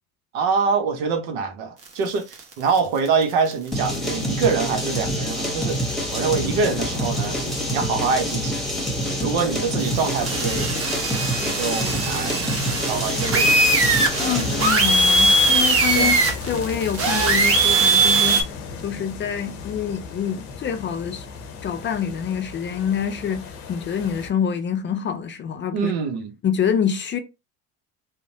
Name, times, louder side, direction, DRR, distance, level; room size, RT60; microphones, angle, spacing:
voice 1, 0.3-7.4 7.7-8.6 9.2-10.7 11.4-12.4 12.9-13.6 15.9-16.2 25.7-26.3, right 5 dB, 80° right, 0.8 m, -25 dB
sound 1, 2.1-2.8 3.1-3.2 3.5-3.6 3.9-4.0 4.8-5.1 5.7-5.8 6.1-6.4 7.1-7.3 7.5-7.6 8.0-8.3 9.7-18.4, right 2 dB, 35° right, 0.9 m, -20 dB
sound 2, 3.7-14.9, equal, ahead, 1.0 m, -26 dB
sound 3, 5.4-24.3, left 5 dB, 85° left, 0.7 m, -37 dB
voice 2, 14.2-18.4 18.8-21.3 21.6-25.9 26.4-27.2, left 8 dB, 30° left, 0.4 m, -26 dB
2.9 x 2.0 x 2.7 m
hypercardioid pair, 80°, 41 cm